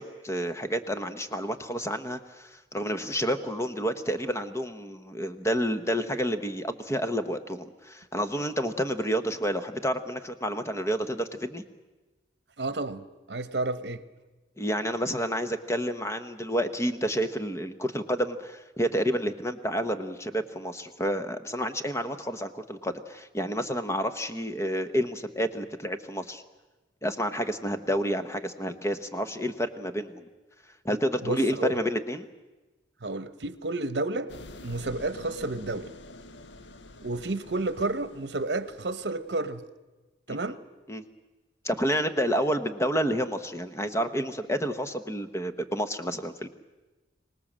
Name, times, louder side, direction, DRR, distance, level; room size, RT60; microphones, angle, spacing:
voice 1, 0.0-11.6 14.6-26.4 27.0-30.3 30.8-32.3 40.3-40.5 40.9-41.0 41.6-46.5, equal, 15° left, 1.1 m, -29 dB
voice 2, 12.6-14.0 31.2-31.8 33.0-34.3 34.6-35.9 37.0-39.6 40.3-40.6, right 2 dB, 70° right, 1.0 m, -31 dB
sound 1, 34.3-39.6, left 2 dB, 80° left, 0.8 m, -48 dB
24.5 x 19.0 x 7.4 m
head